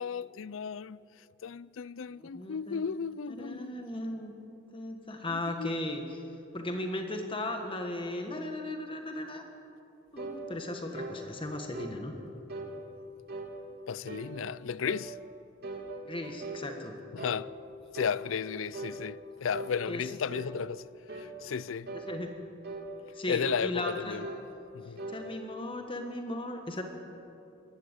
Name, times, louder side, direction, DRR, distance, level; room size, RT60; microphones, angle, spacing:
voice 1, 0.0-3.8 5.3-5.8 13.9-15.2 17.1-17.5 17.9-21.9 23.3-24.3 24.7-25.1, left 6 dB, 85° left, 0.5 m, -34 dB
voice 2, 2.2-2.8 3.4-4.3 4.7-6.0 6.5-9.4 10.1-12.1 16.0-16.9 19.9-20.0 22.1-22.3 23.1-24.2 24.8-26.8, left 1 dB, 25° left, 1.6 m, -36 dB
sound 1, 10.2-10.4 10.9-11.2 11.7-12.0 12.5-12.7 13.3-13.5 14.1-14.3 14.8-15.1 15.6-16.7 17.2-17.4 17.9-18.2 18.7-19.0 19.5-19.8 20.3-20.6 21.1-21.3 21.9-22.1 22.6-22.9 23.4-23.7 24.2-24.4 25.0-25.2, right 2 dB, 55° right, 2.9 m, -40 dB
22.0 x 16.5 x 8.3 m
head